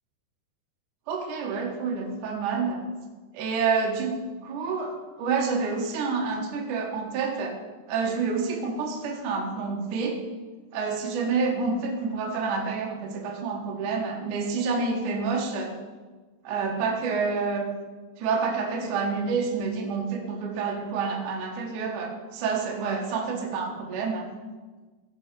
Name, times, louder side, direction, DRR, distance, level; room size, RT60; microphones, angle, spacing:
voice 1, 1.1-2.8 3.3-7.6 7.9-10.2 10.7-15.7 16.4-17.7 18.2-24.3, right 4 dB, 60° right, 0 dB, 2.4 m, -28 dB
15.5 x 6.3 x 5.3 m, 1.3 s
omnidirectional pair, 5.0 m